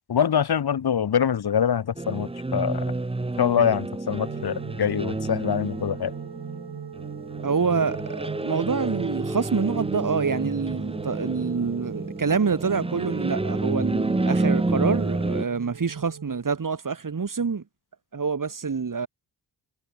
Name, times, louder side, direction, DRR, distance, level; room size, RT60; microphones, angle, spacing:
voice 1, 0.1-2.8 3.4-6.1, left 8 dB, 65° left, 1.8 m, -24 dB
sound 1, 2.0-15.5, right 2 dB, 15° right, 1.1 m, -29 dB
sound 2, 4.1-16.4, right 7 dB, 75° right, 5.8 m, -41 dB
voice 2, 7.4-17.6 18.1-19.1, right 5 dB, 50° right, 6.7 m, -26 dB
wide cardioid pair, 90°, 40 cm